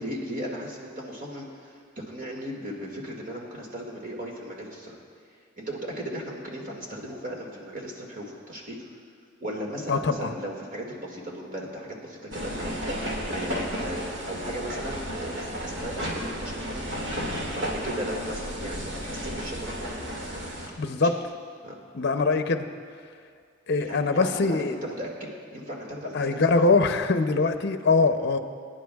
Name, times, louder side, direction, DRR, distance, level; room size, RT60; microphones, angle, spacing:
voice 1, 0.0-5.0 5.6-8.8 9.4-17.0 17.5-20.2 20.8-21.1 21.6-21.7 23.8-26.6, equal, 45° right, -1 dB, 2.0 m, -37 dB
voice 2, 9.9-10.3 17.1-17.5 20.8-21.2 21.9-22.7 23.7-24.8 26.1-28.4, left 3 dB, 60° left, 8 dB, 0.6 m, -23 dB
sound 1, 12.3-20.7, equal, 65° right, 2.1 m, -33 dB
24.5 x 10.0 x 2.4 m, 2.1 s
head